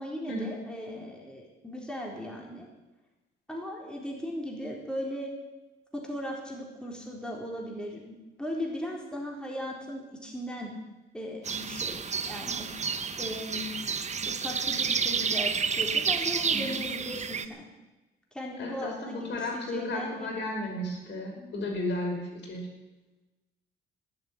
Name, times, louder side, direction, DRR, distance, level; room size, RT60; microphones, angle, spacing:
voice 1, 0.0-2.7 3.5-5.3 5.9-10.7 11.1-12.7 13.2-13.7 14.3-17.7 18.3-20.5, equal, 5° left, -2 dB, 4.0 m, -37 dB
sound 1, 11.4-17.4, right 6 dB, 35° right, 1.0 m, -30 dB
voice 2, 18.6-22.7, left 1 dB, 65° left, 0 dB, 5.6 m, -34 dB
19.0 x 7.8 x 9.3 m, 1.1 s
cardioid pair, 90°, 20 cm